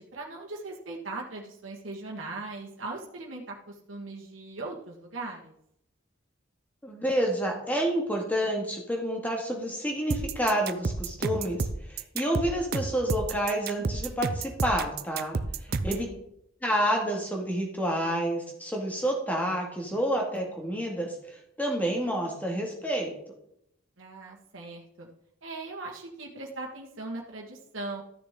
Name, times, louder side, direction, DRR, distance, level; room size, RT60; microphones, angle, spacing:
voice 1, 0.0-5.5 15.7-16.2 24.0-25.1 25.4-28.0, right 2 dB, 85° right, -1 dB, 1.7 m, -39 dB
voice 2, 6.8-16.1 16.6-23.1, equal, 10° left, 0 dB, 2.0 m, -29 dB
sound 1, 10.1-16.1, right 4 dB, 50° right, 0.5 m, -31 dB
13.5 x 6.5 x 3.7 m, 0.75 s
head